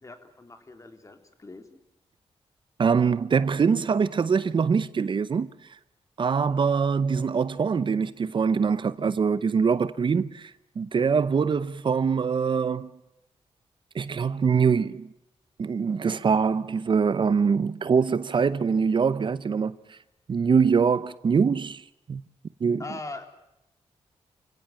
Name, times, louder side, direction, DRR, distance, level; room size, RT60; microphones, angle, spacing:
voice 1, 0.0-1.9 22.8-23.3, left 2 dB, 30° left, 3.5 m, -41 dB
voice 2, 2.8-5.5 6.2-12.9 13.9-15.1 15.6-20.0 20.3-22.2 22.6-22.8, right 6 dB, 50° right, 0.8 m, -24 dB
29.5 x 17.0 x 8.9 m
wide cardioid pair, 110°, 11 cm